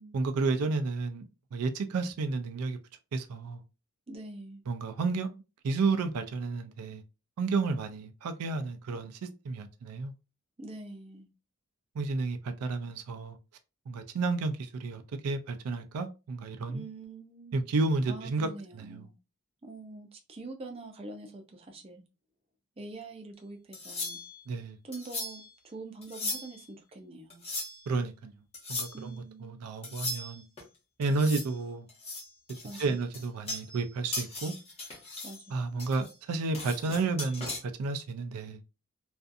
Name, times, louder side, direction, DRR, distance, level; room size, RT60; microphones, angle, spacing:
voice 1, 0.1-2.8 3.1-3.6 4.7-7.0 7.4-9.2 9.4-10.1 12.0-13.4 13.9-16.8 17.5-18.5 18.7-19.1 24.5-24.8 27.9-28.3 28.7-30.4 31.0-31.9 32.8-34.5 35.5-38.6, right 3 dB, 90° right, 0.4 m, -31 dB
voice 2, 4.1-4.6 10.6-11.3 16.7-17.6 18.1-19.1 19.6-22.0 22.8-24.2 24.8-27.4 28.9-29.6 32.6-33.0 35.2-35.6, right 2 dB, 25° right, 0.4 m, -45 dB
sound 1, 23.7-24.4 24.9-25.5 26.0-26.6 27.3-27.9 28.5-29.0 29.8-30.6 31.0-31.5 31.9-33.9 34.1-35.4 35.8-37.6, left 2 dB, 25° left, 0.8 m, -38 dB
2.5 x 2.4 x 2.4 m
head